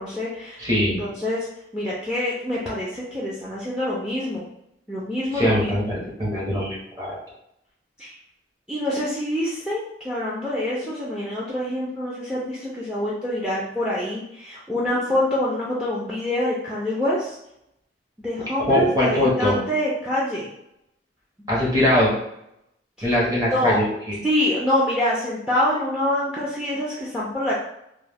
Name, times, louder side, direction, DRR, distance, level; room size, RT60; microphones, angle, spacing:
voice 1, 0.0-0.6 1.0-1.5 1.7-4.5 4.9-5.8 8.0-8.2 8.7-17.4 18.2-20.5 23.0-23.1 23.5-23.8 24.2-27.6, left 1 dB, 5° right, -6 dB, 0.4 m, -25 dB
voice 2, 0.6-1.0 5.3-7.2 18.7-19.6 21.5-22.1 23.0-24.1, left 1 dB, 20° right, -6 dB, 0.9 m, -21 dB
2.3 x 2.2 x 3.3 m, 0.79 s
head